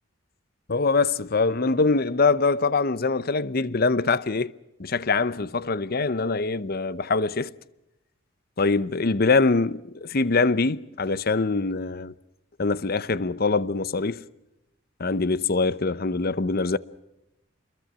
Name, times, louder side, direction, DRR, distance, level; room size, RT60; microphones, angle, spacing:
voice 1, 0.7-4.5 4.8-7.5 8.6-12.1 12.6-14.2 15.0-16.8, left 3 dB, 45° left, 0.8 m, -23 dB
27.5 x 22.0 x 6.1 m
head